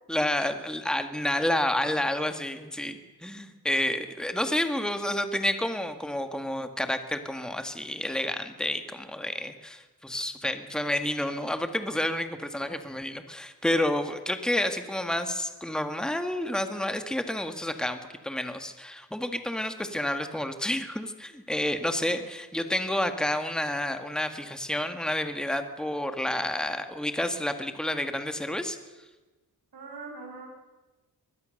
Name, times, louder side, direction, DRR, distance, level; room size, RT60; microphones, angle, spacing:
voice 1, 0.1-28.8, left 1 dB, ahead, 7 dB, 1.9 m, -30 dB
voice 2, 21.9-22.2 29.7-30.5, right 4 dB, 70° right, 1 dB, 6.4 m, -43 dB
23.0 x 20.5 x 6.6 m, 1.2 s
wide cardioid pair, 85°, 39 cm